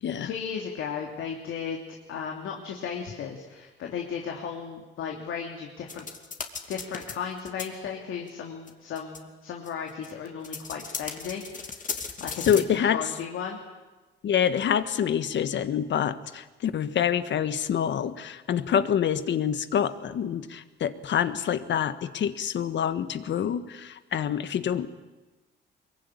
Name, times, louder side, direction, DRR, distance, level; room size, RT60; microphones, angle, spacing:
voice 1, 0.2-1.8 2.1-6.1 6.7-11.8 12.2-13.6, left 7 dB, 80° left, 1 dB, 3.1 m, -35 dB
sound 1, 5.9-7.1 7.4-7.6 8.3-8.4 8.7-8.8 9.0-9.2 9.7-12.6, left 5 dB, 40° left, 2.7 m, -36 dB
voice 2, 12.5-13.0 14.2-24.9, left 8 dB, 65° left, 12 dB, 1.6 m, -26 dB
23.0 x 23.0 x 10.0 m, 1.2 s
cardioid pair, 100°, 20 cm